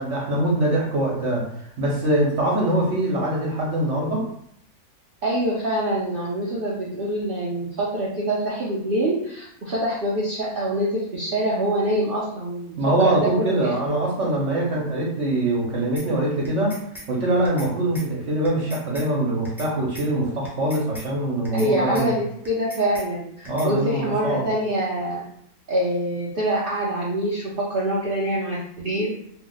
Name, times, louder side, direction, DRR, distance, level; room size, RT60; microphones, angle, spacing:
voice 1, 0.0-1.5 1.8-4.2 12.8-16.8 17.1-22.1 23.5-24.4, right 1 dB, 55° right, -3 dB, 0.9 m, -23 dB
voice 2, 5.2-13.8 21.5-25.2 25.7-29.1, right 1 dB, 80° right, -5 dB, 0.4 m, -25 dB
sound 1, 16.0-16.1 16.4-17.1 17.4-17.7 17.9-18.1 18.4-19.1 19.4-19.7 19.9-20.1 20.4-21.1 21.4-21.7 21.9-22.1 22.4-23.1 23.4-23.7, right 1 dB, 5° right, 0.4 m, -39 dB
2.7 x 2.2 x 3.8 m, 0.69 s
omnidirectional pair, 1.7 m